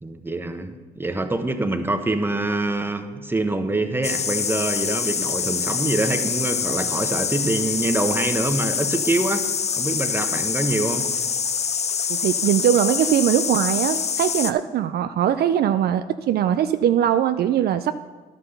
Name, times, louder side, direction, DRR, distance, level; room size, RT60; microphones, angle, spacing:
voice 1, 0.0-9.5 9.8-11.1, right 2 dB, 10° right, 7 dB, 1.1 m, -25 dB
sound 1, 4.0-14.5, left 6 dB, 35° left, 0.7 m, -25 dB
voice 2, 12.1-18.0, right 10 dB, 60° right, 10 dB, 0.5 m, -21 dB
11.0 x 5.8 x 6.7 m, 1.3 s
supercardioid pair, 60°, 18 cm